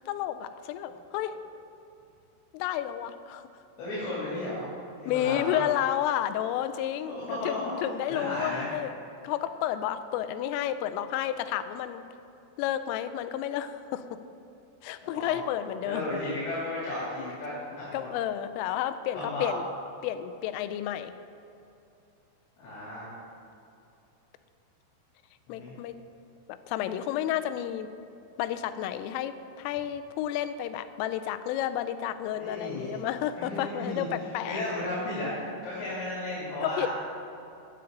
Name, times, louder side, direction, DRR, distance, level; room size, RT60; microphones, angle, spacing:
voice 1, 0.1-1.4 2.5-3.5 5.1-8.9 9.2-12.1 12.6-14.0 14.8-16.1 17.9-19.7 20.0-21.1 25.5-26.0 26.5-27.9 28.4-34.6 36.6-36.9, left 11 dB, 90° left, 11 dB, 3.2 m, -31 dB
voice 2, 3.8-4.7 5.0-5.6 7.0-7.6 8.1-8.7 15.0-15.4 15.8-18.1 19.1-19.5 22.6-23.1 25.5-25.7 32.3-33.0 33.3-34.1 34.4-36.9, left 1 dB, 65° left, -9 dB, 5.1 m, -34 dB
15.5 x 10.0 x 3.9 m, 2.8 s
omnidirectional pair, 5.7 m